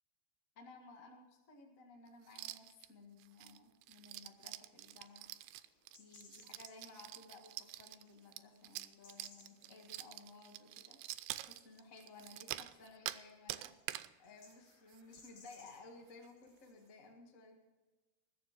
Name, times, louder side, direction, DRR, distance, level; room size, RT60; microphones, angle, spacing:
voice 1, 0.5-5.3 6.0-11.0 11.4-17.6, left 3 dB, 90° left, 2 dB, 0.7 m, -57 dB
sound 1, 2.3-2.9 3.2-13.2 13.5-14.1 14.5-14.6 14.9-15.2 15.5-15.6 16.1-16.3, right 15 dB, 85° right, 2.7 m, -47 dB
sound 2, 4.1-17.1, left 4 dB, 55° left, 2.8 m, -66 dB
20.5 x 7.3 x 5.9 m, 1.2 s
omnidirectional pair, 4.8 m